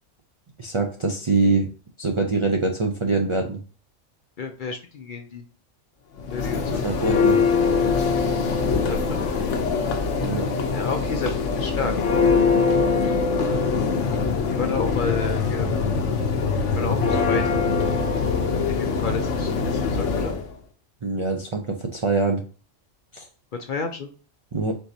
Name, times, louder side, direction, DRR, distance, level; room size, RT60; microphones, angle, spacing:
voice 1, 0.6-1.7 2.0-3.6 6.7-7.4 10.2-10.5 21.0-22.4 23.1-23.3 24.5-24.7, right 3 dB, 50° right, 3 dB, 0.3 m, -24 dB
voice 2, 4.4-5.4 6.3-6.8 8.8-9.2 10.7-11.9 14.5-15.7 16.7-17.6 18.8-20.4 23.7-24.1, left 4 dB, 55° left, 5 dB, 0.6 m, -30 dB
Church bell, 6.2-20.4, left 5 dB, 75° left, 1.1 m, -23 dB
4.6 x 3.9 x 2.7 m, 0.37 s
omnidirectional pair, 1.3 m